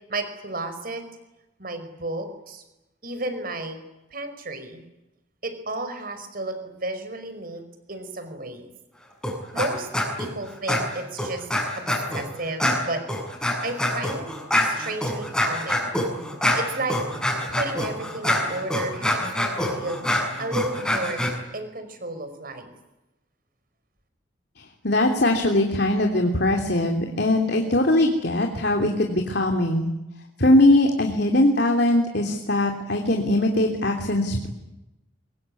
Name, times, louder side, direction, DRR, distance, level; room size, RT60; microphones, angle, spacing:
voice 1, 0.1-1.0 1.6-2.6 3.0-3.8 4.1-4.8 5.4-7.6 7.9-8.7 9.5-9.9 10.2-11.5 11.8-11.9 12.1-13.2 13.6-14.3 14.6-15.9 16.6-17.0 17.5-20.0 20.4-21.2 21.5-22.7, right 2 dB, 50° right, 9 dB, 5.3 m, -32 dB
sound 1, 9.2-9.7 9.9-10.3 10.7-12.2 12.6-21.3, left 1 dB, 5° left, 6.6 m, -25 dB
voice 2, 24.8-29.9 30.4-34.5, left 1 dB, 60° left, 2 dB, 3.1 m, -21 dB
25.0 x 22.5 x 9.8 m, 0.97 s
head